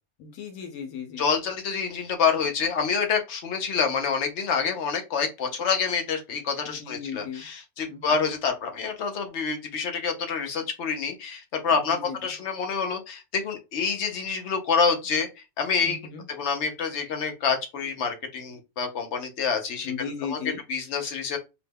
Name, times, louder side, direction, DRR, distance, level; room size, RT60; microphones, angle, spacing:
voice 1, 0.2-1.2 6.6-7.4 7.9-8.2 11.7-12.2 15.8-16.2 19.8-20.6, left 6 dB, 85° left, 4 dB, 1.1 m, -36 dB
voice 2, 1.2-15.3 15.6-16.0 16.4-19.9 20.3-20.4 20.7-21.4, left 5 dB, 65° left, 4 dB, 0.8 m, -27 dB
2.9 x 2.1 x 3.3 m, 0.26 s
omnidirectional pair, 1.5 m